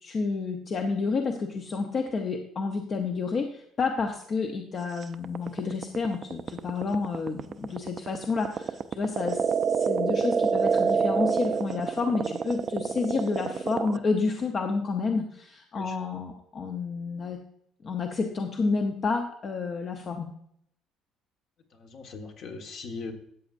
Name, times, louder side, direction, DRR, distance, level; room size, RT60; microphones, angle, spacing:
voice 1, 0.0-17.4 17.8-20.3, left 4 dB, 35° left, 4 dB, 0.8 m, -30 dB
sound 1, 5.0-14.0, right 6 dB, 35° right, 0.4 m, -27 dB
voice 2, 21.8-23.1, left 4 dB, 55° left, 4 dB, 1.5 m, -39 dB
13.5 x 8.2 x 2.6 m, 0.69 s
cardioid pair, 145°, 0 cm